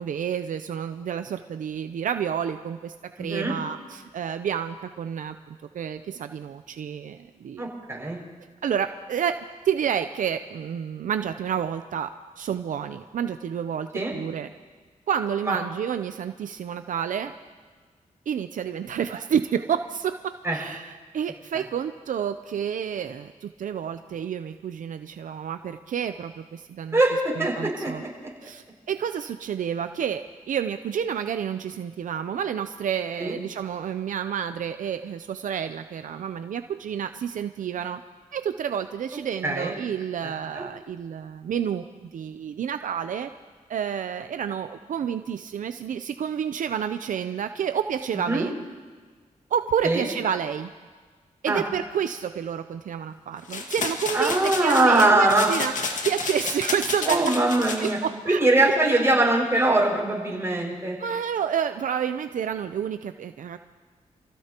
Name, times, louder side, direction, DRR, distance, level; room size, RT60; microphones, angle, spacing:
voice 1, 0.0-7.7 8.6-9.4 9.6-12.1 12.4-14.5 15.1-17.3 18.3-27.0 27.4-28.0 28.4-38.0 38.3-41.8 42.1-43.3 43.7-48.5 49.5-50.7 51.4-57.3 57.8-58.5 61.0-63.6, right 8 dB, 75° right, 9 dB, 0.6 m, -29 dB
voice 2, 3.2-3.5 7.6-8.2 13.9-14.1 15.4-15.6 20.4-20.6 21.5-21.6 26.9-27.1 27.4-27.9 33.2-33.3 39.4-39.7 40.2-40.6 48.2-48.4 49.8-50.1 51.5-51.6 54.1-55.5 57.1-58.0 58.3-61.0, right 2 dB, 20° right, -3 dB, 6.1 m, -22 dB
sound 1, 53.5-57.9, left 4 dB, 70° left, 1.9 m, -31 dB
28.0 x 16.0 x 3.0 m, 1.5 s
cardioid pair, 70°, 13 cm